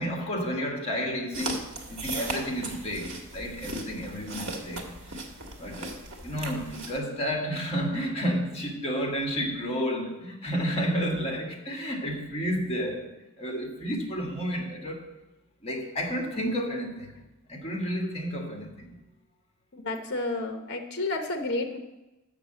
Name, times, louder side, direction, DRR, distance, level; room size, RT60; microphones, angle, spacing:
voice 1, 0.0-1.6 1.9-5.2 5.6-5.9 6.2-13.1 13.4-15.1 15.6-17.1 17.5-18.9, equal, 30° left, 1 dB, 1.7 m, -31 dB
sound 1, 1.3-7.0, right 2 dB, 60° right, 1.5 m, -37 dB
voice 2, 19.8-21.8, left 2 dB, 50° left, 5 dB, 0.9 m, -30 dB
6.6 x 6.4 x 7.6 m, 1.0 s
head